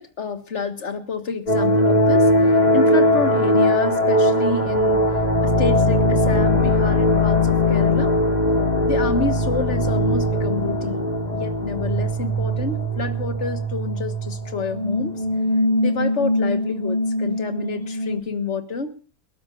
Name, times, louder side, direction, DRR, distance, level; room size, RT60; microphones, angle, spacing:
voice 1, 0.0-2.3 2.7-5.1 5.4-8.1 8.9-15.1 15.8-19.0, left 4 dB, 45° left, 9 dB, 1.8 m, -28 dB
sound 1, 1.5-18.2, left 1 dB, 25° left, 1.9 m, -20 dB
29.5 x 13.0 x 2.5 m, 0.34 s
omnidirectional pair, 1.7 m